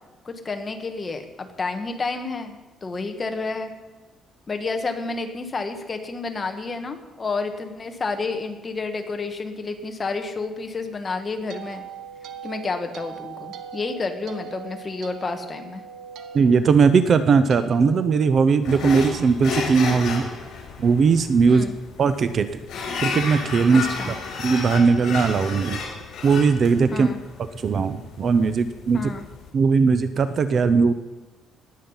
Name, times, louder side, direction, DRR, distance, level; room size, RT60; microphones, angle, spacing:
voice 1, 0.2-3.7 4.5-11.8 12.4-15.8 21.5-21.7 23.7-24.1 26.9-27.2 28.9-29.3, left 3 dB, 25° left, 6 dB, 1.4 m, -30 dB
sound 1, 11.0-19.3, right 6 dB, 75° right, 1.2 m, -41 dB
voice 2, 16.3-20.3 20.8-21.7 22.0-22.6 23.0-23.9 24.4-25.8 26.2-27.1 27.6-29.1 29.5-30.9, right 5 dB, 40° right, 12 dB, 0.6 m, -19 dB
sound 2, 18.6-29.5, left 4 dB, 65° left, 4.4 m, -32 dB
19.0 x 7.6 x 5.5 m, 1.2 s
cardioid pair, 155°, 0 cm